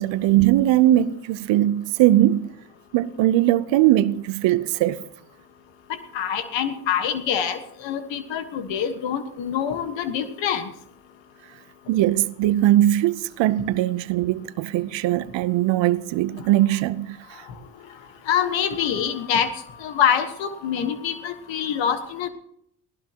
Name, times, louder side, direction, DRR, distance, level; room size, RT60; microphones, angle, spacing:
voice 1, 0.0-2.5 2.9-5.0 11.9-17.4, right 14 dB, 90° right, 0.8 m, -20 dB
voice 2, 6.1-10.7 18.3-22.3, left 8 dB, 85° left, 1.5 m, -25 dB
23.0 x 16.0 x 2.9 m
supercardioid pair, 65°, 43 cm